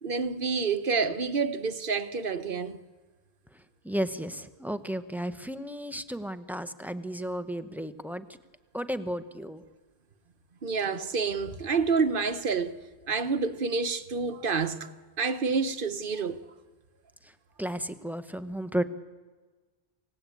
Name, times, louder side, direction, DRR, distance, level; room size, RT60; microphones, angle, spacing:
voice 1, 0.0-2.8 10.6-12.7 13.1-14.9 15.2-16.4, right 5 dB, 60° right, 1.2 m, -28 dB
voice 2, 3.8-8.2 8.7-9.6 17.6-18.8, equal, ahead, 0.9 m, -33 dB
27.5 x 17.5 x 8.5 m
omnidirectional pair, 1.0 m